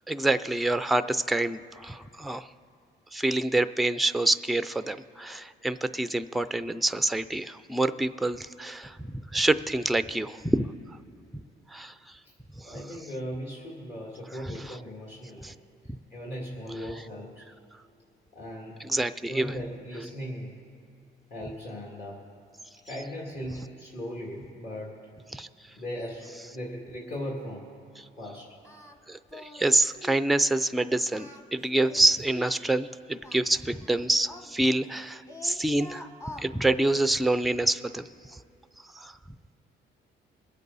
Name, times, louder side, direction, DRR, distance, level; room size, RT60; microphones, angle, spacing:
voice 1, 0.1-2.5 3.1-9.0 9.3-10.7 11.7-11.9 15.4-15.5 18.8-19.6 25.3-25.5 29.1-36.0 36.4-38.0 39.0-39.1, right 2 dB, ahead, 13 dB, 0.4 m, -26 dB
voice 2, 12.6-15.5 16.1-17.4 18.3-18.8 19.3-20.6 21.3-22.2 22.8-24.9 25.8-27.7 28.2-28.5, equal, 50° left, -4 dB, 2.4 m, -38 dB
Singing, 28.6-29.0 29.3-29.7 30.0-30.3 31.0-32.6 33.2-35.0 35.3-36.5, left 1 dB, 15° left, 1.2 m, -45 dB
22.5 x 8.2 x 4.0 m, 2.7 s
cardioid pair, 90°, 20 cm